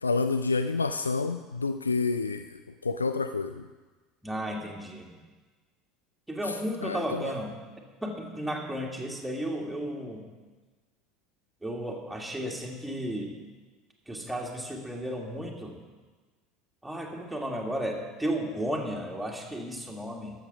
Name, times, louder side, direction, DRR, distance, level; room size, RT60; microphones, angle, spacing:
voice 1, 0.0-2.4 2.8-3.6 6.8-7.3, left 4 dB, 80° left, 10 dB, 0.3 m, -28 dB
voice 2, 4.2-5.2 6.3-7.5 8.0-10.2 11.6-13.3 14.1-15.8 16.8-20.3, equal, 5° right, -1 dB, 2.0 m, -33 dB
12.5 x 7.2 x 5.9 m, 1.3 s
figure-of-eight pair, 70°, 0 cm